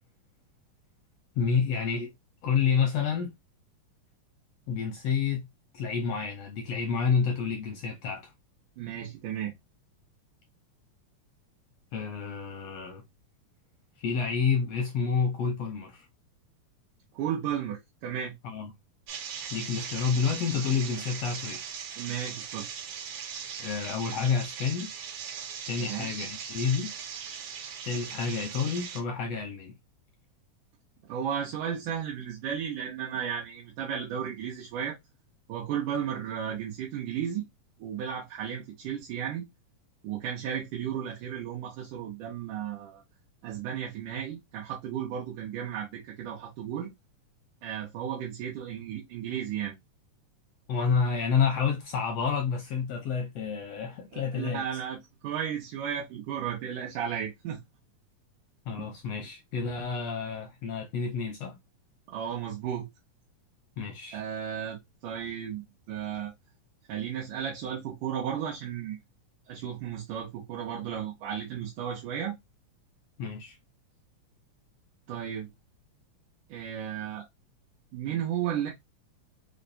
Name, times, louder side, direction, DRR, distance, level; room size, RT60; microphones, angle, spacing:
voice 1, 1.4-2.1 2.4-3.3 4.7-5.4 5.7-8.3 11.9-13.0 14.0-16.0 18.4-18.7 19.5-21.6 23.6-24.9 25.7-26.9 27.8-29.7 50.7-54.6 58.7-61.6 63.8-64.2 73.2-73.6, left 6 dB, 80° left, 1.4 m, -29 dB
voice 2, 8.8-9.5 17.1-18.3 22.0-22.7 25.8-26.1 31.1-35.0 35.5-37.4 37.8-39.5 40.0-43.0 43.4-46.9 47.6-49.7 54.1-55.0 55.2-57.6 58.8-58.9 62.1-62.9 64.1-66.3 66.9-69.0 69.5-72.3 75.1-75.5 76.5-77.2 77.9-78.7, right 9 dB, 90° right, 2.5 m, -34 dB
sound 1, 19.1-29.0, right 7 dB, 70° right, 1.6 m, -39 dB
5.6 x 2.1 x 2.6 m
omnidirectional pair, 3.5 m